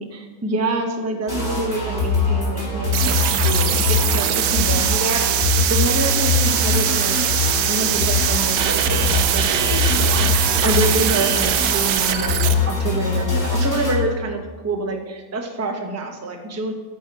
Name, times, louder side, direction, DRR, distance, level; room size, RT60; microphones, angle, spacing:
voice 1, 0.0-7.2 7.7-16.7, right 2 dB, 25° right, 3 dB, 0.3 m, -27 dB
sound 1, 1.3-13.9, left 3 dB, 30° left, 2.6 m, -22 dB
sound 2, 2.9-12.5, right 10 dB, 70° right, 1.1 m, -21 dB
13.0 x 4.5 x 4.8 m, 1.2 s
omnidirectional pair, 2.0 m